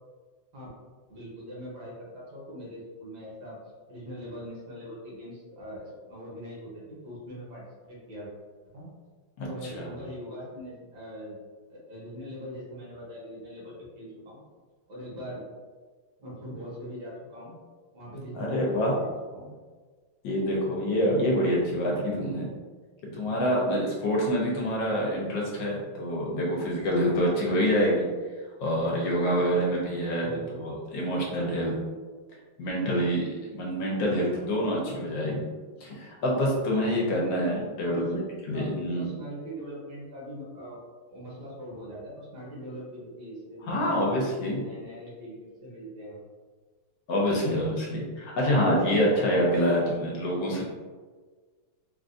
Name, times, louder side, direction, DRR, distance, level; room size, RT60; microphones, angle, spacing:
voice 1, 1.1-3.6 3.9-8.3 8.7-8.9 9.4-11.4 11.7-14.4 14.9-15.4 16.2-17.5 17.9-19.6 30.2-30.6 37.8-40.8 41.1-46.2 47.4-47.5, equal, 65° right, -6 dB, 1.6 m, -41 dB
voice 2, 9.4-9.9 18.3-19.0 20.2-22.5 23.0-28.0 28.6-30.3 30.6-31.7 32.6-35.5 35.8-38.2 38.5-39.1 43.6-44.6 47.1-50.6, equal, 70° left, -3 dB, 1.4 m, -26 dB
3.7 x 2.4 x 2.5 m, 1.4 s
omnidirectional pair, 2.2 m